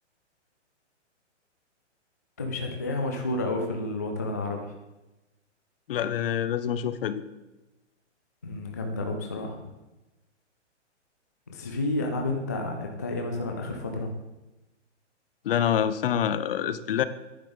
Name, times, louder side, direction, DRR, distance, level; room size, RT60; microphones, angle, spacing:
voice 1, 2.4-4.7 8.4-9.7 11.5-14.1, left 2 dB, 15° left, 2 dB, 0.3 m, -30 dB
voice 2, 5.9-7.2 15.5-17.0, left 9 dB, 50° left, 13 dB, 0.7 m, -26 dB
10.0 x 9.9 x 3.9 m, 1.0 s
hypercardioid pair, 150°, 36 cm